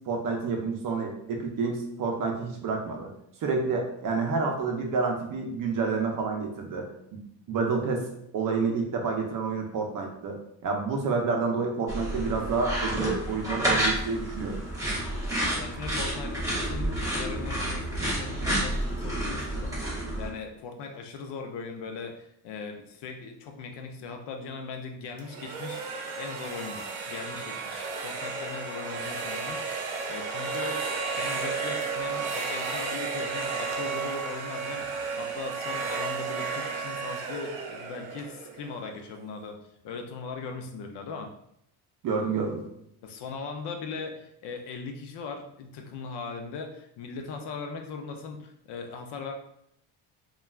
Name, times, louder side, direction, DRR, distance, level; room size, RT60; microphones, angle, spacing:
voice 1, 0.1-3.1 3.4-6.9 7.1-7.2 7.5-8.1 8.3-10.4 10.6-14.6 42.0-42.6, right 4 dB, 45° right, 2 dB, 0.6 m, -29 dB
sound 1, 11.9-20.3, right 1 dB, 5° right, 0.7 m, -30 dB
voice 2, 15.6-16.4 16.6-30.9 31.2-39.6 39.8-41.3 43.0-49.3, left 4 dB, 60° left, 4 dB, 0.6 m, -39 dB
sound 2, 25.2-39.0, right 4 dB, 90° right, 0.7 m, -33 dB
3.2 x 2.3 x 2.3 m, 0.75 s
cardioid pair, 155°, 47 cm